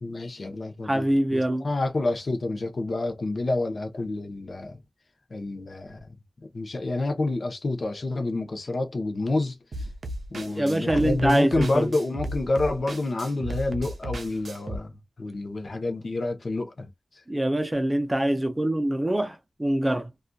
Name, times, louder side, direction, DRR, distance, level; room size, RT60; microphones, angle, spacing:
voice 1, 0.0-4.8 5.3-6.1 6.4-9.6 10.3-14.9 15.2-16.9, left 2 dB, 55° left, 0.7 m, -28 dB
voice 2, 0.8-1.7 10.6-11.9 17.3-20.1, right 1 dB, 20° right, 0.5 m, -24 dB
sound 1, 9.7-14.8, right 1 dB, 85° right, 0.4 m, -35 dB
2.5 x 2.3 x 2.2 m
wide cardioid pair, 110°, 0 cm